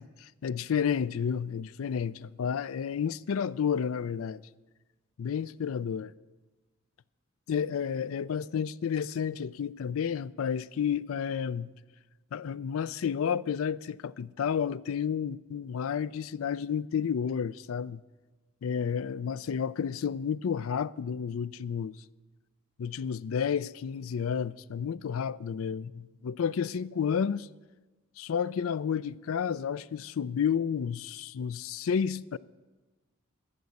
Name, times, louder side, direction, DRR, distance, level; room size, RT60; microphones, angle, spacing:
voice 1, 0.0-4.4 5.2-6.1 7.5-11.7 12.3-18.0 18.6-22.0 22.8-27.5 28.2-32.4, left 7 dB, 80° left, 0.4 m, -31 dB
12.0 x 7.6 x 8.4 m
head